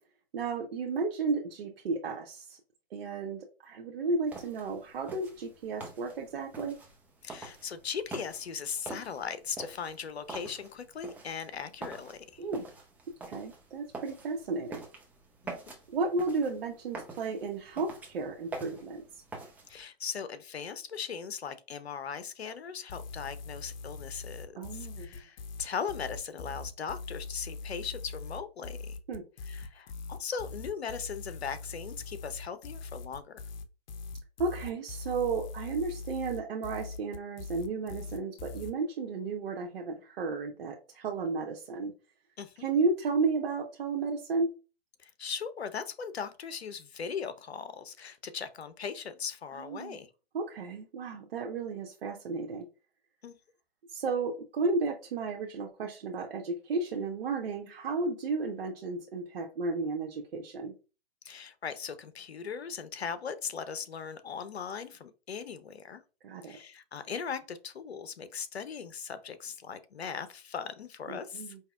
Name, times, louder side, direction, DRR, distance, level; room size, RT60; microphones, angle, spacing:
voice 1, 0.3-2.6 2.9-6.8 12.4-12.7 13.3-14.8 15.9-19.0 24.5-25.2 29.1-29.2 34.4-41.9 42.6-44.5 49.5-50.0 50.3-52.7 53.9-60.7 66.2-66.6 71.1-71.6, right 3 dB, 65° right, 0.8 m, -33 dB
sound 1, 4.3-19.8, right 3 dB, 5° right, 0.5 m, -46 dB
voice 2, 7.2-12.4 15.4-15.5 19.7-29.0 29.5-33.4 42.4-42.5 45.0-50.1 53.2-53.4 61.2-66.0 66.4-71.6, left 6 dB, 85° left, 0.7 m, -39 dB
sound 2, 22.9-38.7, left 3 dB, 45° left, 0.5 m, -42 dB
4.9 x 2.8 x 2.3 m
hypercardioid pair, 130°, 31 cm